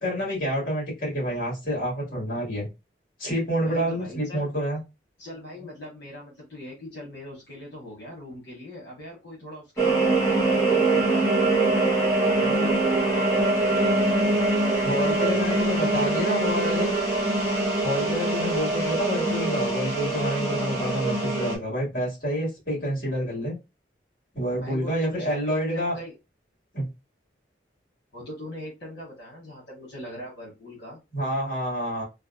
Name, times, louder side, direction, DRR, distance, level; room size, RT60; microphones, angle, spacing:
voice 1, 0.0-2.7 3.2-4.8 14.8-16.9 17.8-23.6 24.3-26.0 26.7-26.8 31.1-32.0, equal, 50° left, -3 dB, 1.9 m, -28 dB
voice 2, 3.6-4.5 5.2-11.1 12.4-14.4 15.0-16.8 24.6-26.1 28.1-31.0, left 1 dB, 70° left, -4 dB, 1.4 m, -41 dB
sound 1, 9.8-21.6, right 2 dB, 15° left, 1.0 m, -23 dB
3.3 x 2.3 x 2.4 m, 0.25 s
head